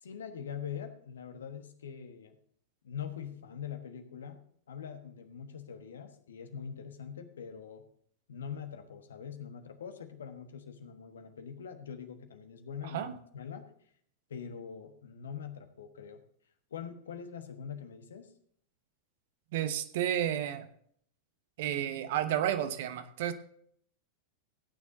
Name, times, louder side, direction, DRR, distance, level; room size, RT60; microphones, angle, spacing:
voice 1, 0.0-2.4 2.8-4.4 4.7-7.8 8.3-13.7 14.3-16.2 16.7-18.3, left 7 dB, 65° left, 7 dB, 1.3 m, -43 dB
voice 2, 19.5-20.7 21.6-23.3, right 11 dB, 55° right, 10 dB, 1.0 m, -31 dB
17.0 x 9.5 x 2.7 m, 0.64 s
figure-of-eight pair, 90°, 0 cm